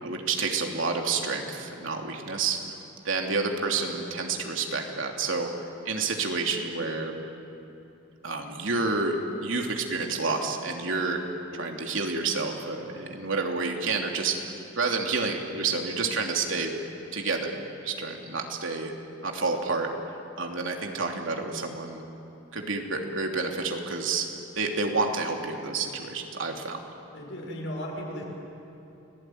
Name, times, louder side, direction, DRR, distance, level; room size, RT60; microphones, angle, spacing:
voice 1, 0.0-2.6 3.0-5.5 5.8-7.2 8.2-11.2 11.5-16.7 17.1-18.9 19.2-19.9 20.4-22.0 22.5-24.3 24.6-26.8, right 4 dB, 85° right, 2 dB, 3.1 m, -29 dB
voice 2, 27.1-28.2, equal, 70° left, -1 dB, 6.9 m, -35 dB
29.5 x 20.0 x 9.5 m, 3.0 s
head